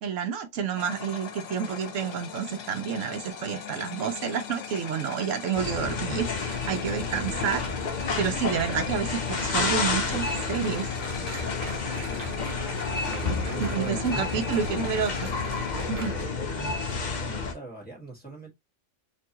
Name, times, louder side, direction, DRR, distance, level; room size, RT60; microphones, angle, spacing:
voice 1, 0.0-7.6 8.2-10.9 13.6-15.3 15.9-16.1, right 7 dB, 75° right, 1.0 m, -29 dB
sound 1, 0.8-16.0, left 6 dB, 70° left, 1.0 m, -40 dB
sound 2, 5.5-17.5, left 4 dB, 40° left, 0.8 m, -30 dB
sound 3, 9.2-16.3, right 3 dB, 40° right, 1.0 m, -42 dB
voice 2, 12.1-12.5 13.1-15.0 15.7-18.5, right 3 dB, 5° left, 1.5 m, -42 dB
4.5 x 2.7 x 2.9 m
omnidirectional pair, 1.3 m